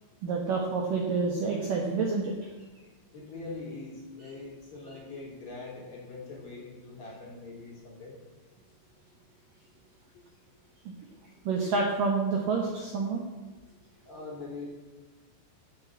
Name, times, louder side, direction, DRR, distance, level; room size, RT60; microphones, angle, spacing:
voice 1, 0.2-2.3 11.5-13.2, right 4 dB, 85° right, 1 dB, 1.9 m, -28 dB
voice 2, 3.1-8.2 14.1-14.7, left 3 dB, 40° left, -3 dB, 3.9 m, -42 dB
13.5 x 5.9 x 8.3 m, 1.3 s
omnidirectional pair, 6.0 m